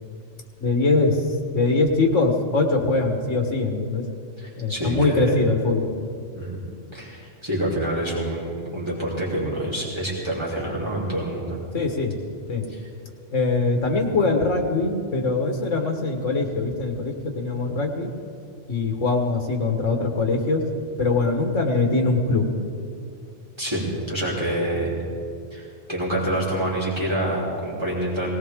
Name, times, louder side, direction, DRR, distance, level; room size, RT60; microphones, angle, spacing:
voice 1, 0.6-1.2 1.5-4.0 4.6-5.9 11.7-12.1 12.5-12.7 13.3-18.1 18.7-20.6 21.0-22.5, left 3 dB, 85° left, 3 dB, 1.8 m, -22 dB
voice 2, 4.4-5.4 6.3-6.5 6.9-11.6 12.7-12.8 23.6-24.9 25.5-28.3, right 1 dB, 20° right, -6 dB, 3.2 m, -27 dB
19.0 x 18.0 x 3.7 m, 2.4 s
omnidirectional pair, 1.2 m